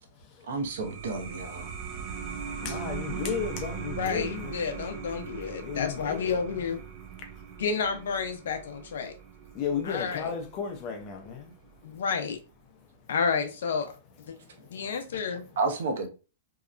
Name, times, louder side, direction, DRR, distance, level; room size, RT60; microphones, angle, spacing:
voice 1, 0.5-1.7 15.6-16.1, right 3 dB, 65° right, 0.7 m, -30 dB
sound 1, 0.6-11.7, right 7 dB, 30° right, 0.4 m, -40 dB
voice 2, 2.6-4.6 5.6-6.8 9.5-11.5, left 7 dB, 30° left, 0.6 m, -34 dB
voice 3, 3.9-6.8 7.6-9.1 9.8-10.3 11.8-12.4 13.1-13.9 14.3-14.4 14.7-15.4, left 5 dB, 75° left, 0.5 m, -30 dB
2.8 x 2.1 x 2.4 m
hypercardioid pair, 165°, 0 cm